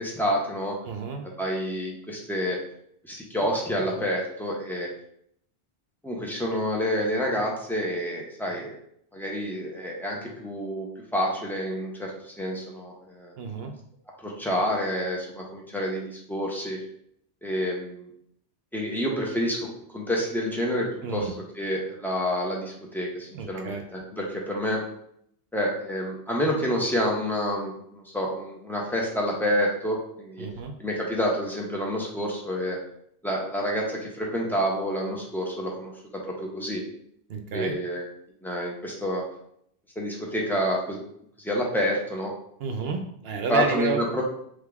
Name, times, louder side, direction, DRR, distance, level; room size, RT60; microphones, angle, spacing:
voice 1, 0.0-0.7 1.2-2.6 3.0-4.9 6.0-8.7 9.1-13.3 14.2-16.8 17.4-18.1 18.7-24.8 25.5-30.5 30.8-32.8 33.2-35.9 36.2-36.8 37.5-38.1 38.4-39.2 40.0-41.0 41.4-42.3 43.5-44.2, equal, ahead, -2 dB, 0.8 m, -28 dB
voice 2, 0.9-1.2 13.4-13.7 21.0-21.3 23.3-23.8 30.4-30.7 37.3-37.8 42.6-44.0, right 4 dB, 65° right, 4 dB, 0.8 m, -31 dB
3.6 x 3.4 x 3.5 m, 0.69 s
omnidirectional pair, 1.2 m